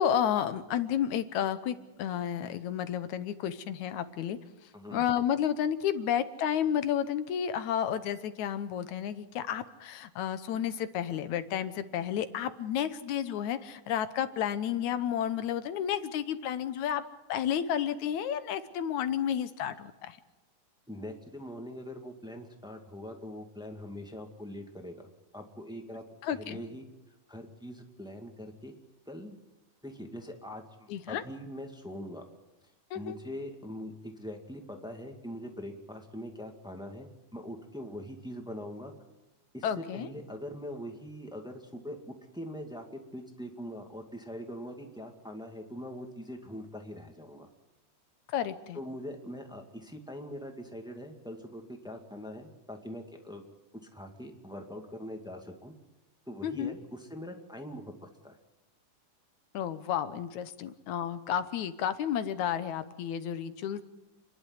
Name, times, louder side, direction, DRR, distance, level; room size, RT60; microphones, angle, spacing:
voice 1, 0.0-4.4 4.9-17.0 17.3-20.2 26.2-26.6 30.9-31.2 32.9-33.2 39.6-40.1 48.3-48.8 56.4-56.7 59.5-63.8, left 9 dB, 70° left, 12 dB, 2.2 m, -31 dB
voice 2, 4.7-5.0 20.9-26.0 26.3-26.8 27.3-28.7 29.0-29.4 29.8-32.3 32.9-38.9 39.5-42.0 42.3-47.5 48.7-53.4 53.9-55.7 56.3-58.4, equal, ahead, 3 dB, 1.4 m, -42 dB
29.5 x 11.5 x 9.6 m, 1.0 s
omnidirectional pair, 3.7 m